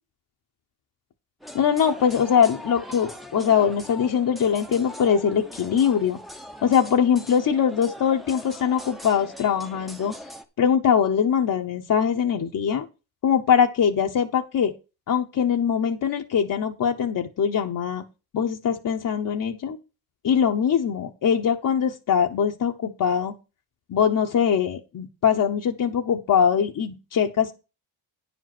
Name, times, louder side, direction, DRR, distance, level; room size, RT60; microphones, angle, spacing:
sound 1, 1.4-10.4, left 1 dB, ahead, 0.8 m, -41 dB
voice 1, 1.5-6.2 6.6-10.1 10.6-12.9 13.2-14.7 15.1-18.0 18.3-19.8 20.2-23.3 23.9-27.5, left 8 dB, 45° left, 2 dB, 1.0 m, -22 dB
10.5 x 5.1 x 6.0 m, 0.29 s
cardioid pair, 155°, 45 cm